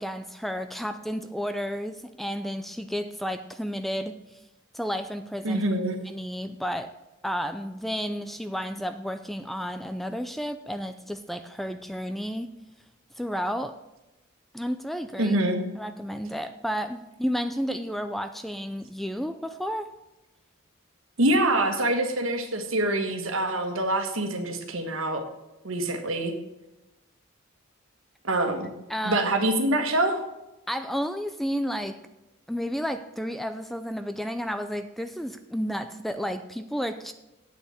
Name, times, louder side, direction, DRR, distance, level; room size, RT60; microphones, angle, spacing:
voice 1, 0.0-4.1 4.7-5.6 6.0-6.9 7.2-12.5 13.2-13.8 14.5-15.4 15.7-19.9 28.9-29.3 30.7-32.0 32.5-37.1, equal, ahead, 9 dB, 0.4 m, -32 dB
voice 2, 5.4-6.0 15.2-15.6 21.2-25.3 25.6-26.3 28.2-28.7 29.0-30.2, right 1 dB, 75° right, 6 dB, 1.6 m, -25 dB
8.6 x 6.4 x 8.2 m, 0.97 s
head